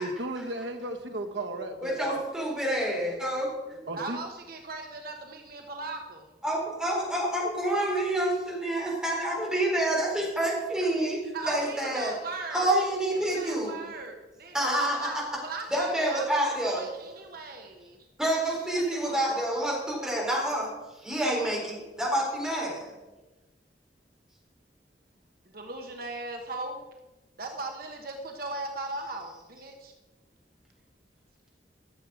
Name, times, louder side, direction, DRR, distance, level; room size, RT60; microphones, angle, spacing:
voice 1, 0.0-2.2 3.9-4.2, right 1 dB, 85° right, 5 dB, 1.2 m, -35 dB
voice 2, 1.8-3.8 6.4-11.2 11.5-12.1 12.5-13.7 14.5-15.2 15.7-16.8 18.2-20.7 21.0-22.9, right 1 dB, 5° right, -4 dB, 4.1 m, -28 dB
voice 3, 3.9-6.3 11.3-12.7 13.2-18.0 18.4-19.5 25.5-26.8 27.4-29.9, right 3 dB, 55° right, 3 dB, 1.1 m, -38 dB
13.0 x 7.4 x 6.3 m, 1.1 s
head